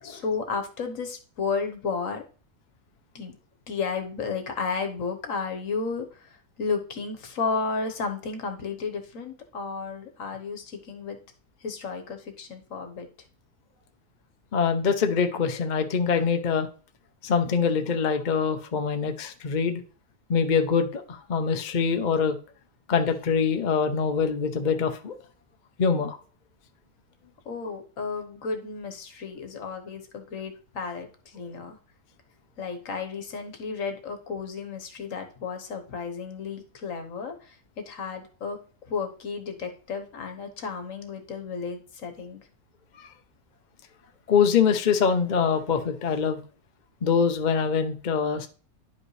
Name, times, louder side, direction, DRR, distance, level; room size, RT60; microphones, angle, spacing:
voice 1, 0.0-2.2 3.1-3.4 3.7-11.2 11.6-13.1 27.4-31.8 32.6-38.6 38.9-42.4, left 5 dB, 60° left, 5 dB, 1.4 m, -33 dB
voice 2, 14.5-16.7 17.2-19.8 20.3-22.4 22.9-25.1 25.8-26.2 43.0-43.1 44.3-46.4 47.0-48.5, left 6 dB, 45° left, 6 dB, 0.6 m, -24 dB
10.5 x 5.2 x 3.2 m, 0.39 s
omnidirectional pair, 1.6 m